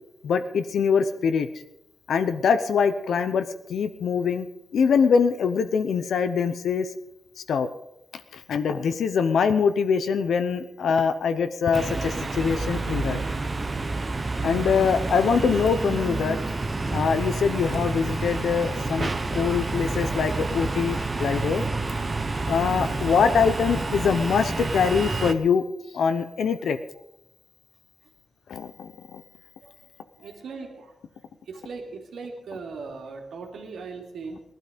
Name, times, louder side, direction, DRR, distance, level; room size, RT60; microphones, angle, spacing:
voice 1, 0.2-1.5 2.1-4.5 4.7-6.9 7.5-7.7 8.3-13.2 14.4-16.4 16.9-21.6 22.5-25.6 25.9-26.8 28.5-29.2, left 6 dB, 75° left, 9 dB, 0.8 m, -23 dB
sound 1, 11.7-25.3, right 3 dB, 20° right, 0.8 m, -29 dB
voice 2, 30.2-30.9 31.5-34.4, right 4 dB, 85° right, 2 dB, 2.9 m, -38 dB
19.0 x 12.0 x 5.2 m, 0.86 s
wide cardioid pair, 165°, 0 cm